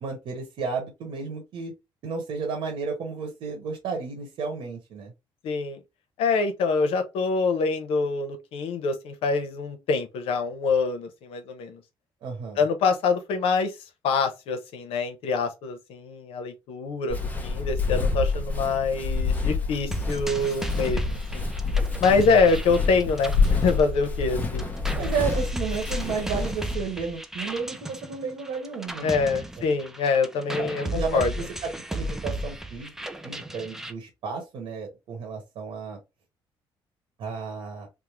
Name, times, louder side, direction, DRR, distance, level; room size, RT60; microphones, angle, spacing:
voice 1, 0.0-1.7 2.0-5.1 12.2-12.6 22.3-22.4 24.9-29.1 30.6-32.9 33.2-36.0 37.2-37.9, right 5 dB, 70° right, 1.2 m, -32 dB
voice 2, 5.4-5.8 6.2-11.8 12.6-13.7 14.0-21.4 22.0-24.7 29.0-31.3, left 4 dB, 80° left, 0.8 m, -25 dB
Walk footsteps, 17.1-26.7, left 4 dB, 15° left, 0.8 m, -28 dB
sound 1, 19.9-24.3 24.6-33.9, right 1 dB, 5° right, 0.4 m, -34 dB
3.5 x 2.1 x 3.1 m
cardioid pair, 125°, 9 cm